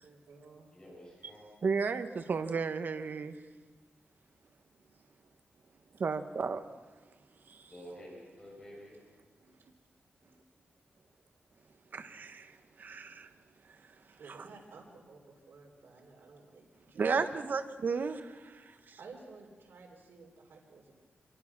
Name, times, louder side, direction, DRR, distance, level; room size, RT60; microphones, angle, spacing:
voice 1, 0.0-0.7 1.3-1.6 9.4-9.7 10.3-10.4 14.1-17.2 19.0-21.0, right 4 dB, 80° right, 4.0 m, -54 dB
voice 2, 0.7-1.5 7.7-9.0, equal, 25° left, 7.4 m, -49 dB
voice 3, 1.6-3.4 6.0-6.6 7.5-7.7 11.9-13.3 13.7-13.8 14.3-14.5 16.9-19.0, right 5 dB, 55° right, 1.3 m, -34 dB
26.0 x 23.0 x 6.1 m
wide cardioid pair, 150°, 4 cm